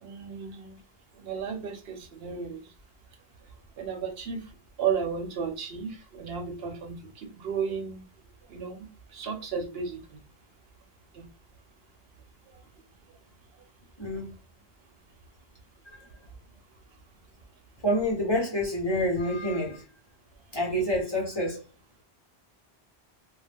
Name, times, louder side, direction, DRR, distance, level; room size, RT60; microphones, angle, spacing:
voice 1, 0.0-0.8 1.2-2.6 3.8-4.4 4.8-8.0 8.5-8.9 9.1-10.2 11.1-11.3, right 6 dB, 75° right, 0.9 m, -33 dB
voice 2, 14.0-14.3 17.8-19.8 20.5-21.6, equal, 25° left, 0.9 m, -27 dB
2.3 x 2.1 x 3.3 m
omnidirectional pair, 1.1 m